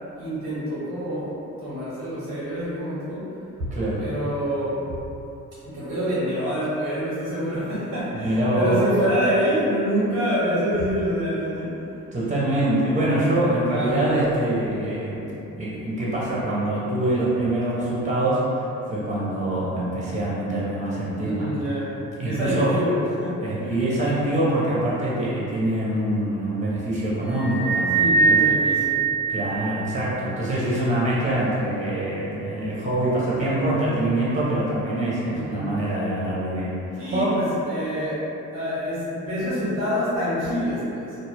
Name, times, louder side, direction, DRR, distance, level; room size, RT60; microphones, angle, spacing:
voice 1, 0.1-3.3 3.6-3.7 4.0-5.0 5.6-11.8 13.7-14.2 21.1-21.9 22.2-23.7 27.9-29.0 35.3-35.8 37.0-38.2 38.5-41.2, equal, 85° right, -10 dB, 1.1 m, -26 dB
voice 2, 3.7-4.1 8.2-8.9 12.1-15.2 15.6-21.5 22.2-22.8 23.4-28.4 29.3-37.5, right 1 dB, 15° right, -7 dB, 1.0 m, -24 dB
sound 1, 27.3-30.0, right 4 dB, 35° left, 0.6 m, -22 dB
2.4 x 2.1 x 3.4 m, 2.9 s
hypercardioid pair, 40°, 41 cm